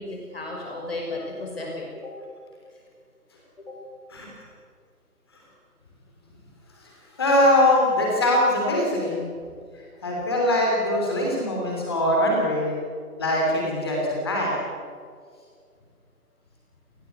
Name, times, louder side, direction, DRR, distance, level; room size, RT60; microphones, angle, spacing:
voice 1, 0.0-2.1 3.6-3.7, left 2 dB, 40° left, -1 dB, 5.9 m, -34 dB
voice 2, 7.2-9.3 10.0-12.7 13.2-14.5, left 1 dB, 15° left, -2 dB, 3.1 m, -22 dB
29.0 x 19.0 x 8.3 m, 2.1 s
figure-of-eight pair, 165°, 47 cm